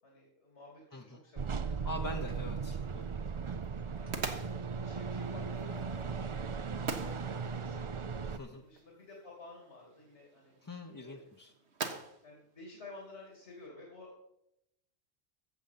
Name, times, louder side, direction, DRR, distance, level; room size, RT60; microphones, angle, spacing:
voice 1, 0.0-1.9 2.6-2.8 3.8-8.0 8.4-11.2 12.2-14.2, left 2 dB, 75° left, -1 dB, 3.0 m, -53 dB
sound 1, 1.4-8.4, right 5 dB, 40° right, 0.4 m, -37 dB
voice 2, 1.7-3.1 8.3-8.6 10.6-11.5, left 1 dB, 20° left, 1 dB, 0.7 m, -43 dB
sound 2, 2.0-13.7, right 4 dB, 70° right, 1.6 m, -46 dB
14.5 x 7.9 x 5.6 m, 0.80 s
omnidirectional pair, 1.2 m